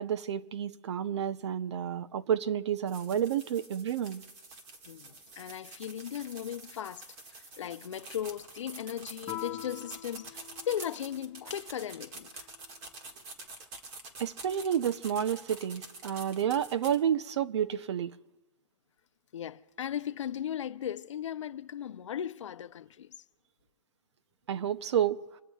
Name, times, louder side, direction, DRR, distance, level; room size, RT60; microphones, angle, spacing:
voice 1, 0.0-4.2 14.2-18.2 24.5-25.3, right 9 dB, 65° right, 0.8 m, -30 dB
sound 1, 2.9-17.0, right 3 dB, 30° right, 1.9 m, -47 dB
voice 2, 4.9-7.0 7.3-12.5 19.3-23.1, left 10 dB, 75° left, 0.6 m, -37 dB
Guitar, 9.2-11.7, left 13 dB, 20° left, 3.4 m, -44 dB
26.0 x 19.0 x 2.4 m
hypercardioid pair, 150°, 16 cm